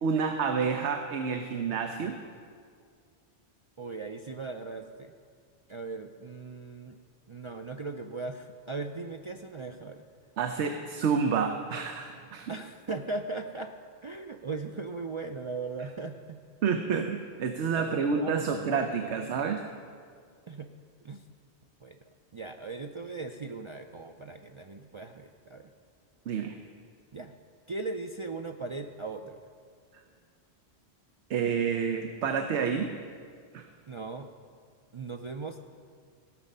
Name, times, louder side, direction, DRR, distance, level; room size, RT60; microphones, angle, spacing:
voice 1, 0.0-2.2 10.4-12.5 16.6-19.6 26.3-26.6 31.3-32.9 33.5-33.7, right 6 dB, 90° right, 5 dB, 1.0 m, -29 dB
voice 2, 3.8-5.1 5.7-7.0 7.3-10.1 12.5-13.7 14.0-16.4 16.9-17.1 17.7-19.2 20.5-20.7 21.0-21.2 21.8-22.0 22.3-25.7 27.1-27.4 27.7-29.4 33.9-34.3 34.9-35.6, right 3 dB, 55° right, 5 dB, 0.3 m, -38 dB
16.5 x 7.3 x 5.4 m, 2.1 s
omnidirectional pair, 1.1 m